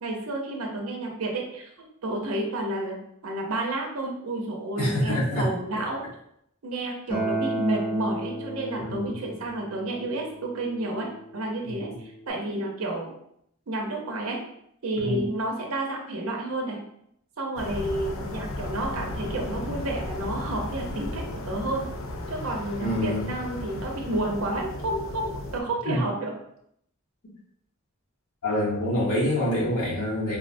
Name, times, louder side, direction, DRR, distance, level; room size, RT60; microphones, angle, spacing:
voice 1, 0.0-1.7 2.0-3.0 3.2-6.0 6.6-13.1 13.7-14.4 14.8-16.8 17.4-21.9 22.3-26.3, right 1 dB, 85° right, 1 dB, 0.6 m, -30 dB
voice 2, 4.8-5.5 5.7-5.8 8.9-9.1 11.6-11.7 15.0-15.3 22.8-23.2 25.8-26.0 28.4-30.4, left 1 dB, 85° left, -6 dB, 1.2 m, -26 dB
Acoustic guitar, 7.1-12.3, right 2 dB, 25° left, 0.7 m, -34 dB
sound 1, 17.6-25.6, left 1 dB, 65° left, 0.4 m, -35 dB
3.6 x 2.1 x 2.6 m, 0.72 s
head